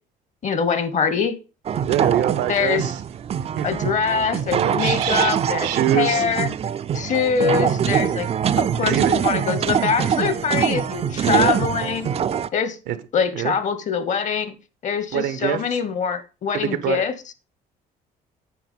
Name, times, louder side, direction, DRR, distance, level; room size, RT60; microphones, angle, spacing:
voice 1, 0.4-1.3 2.5-2.8 3.6-5.7 5.9-6.5 6.9-8.3 8.6-12.1 12.5-12.8 13.1-14.6 14.8-17.1, left 6 dB, 45° left, 1.2 m, -23 dB
sound 1, 1.7-12.5, right 8 dB, 35° right, 0.5 m, -23 dB
voice 2, 1.9-3.0 3.4-3.8 4.5-6.2 8.9-9.2 11.2-11.6 12.9-13.0 13.3-13.6 15.1-15.8 16.5-17.1, right 11 dB, 90° right, 1.1 m, -24 dB
9.2 x 4.8 x 5.3 m
cardioid pair, 110°, 17 cm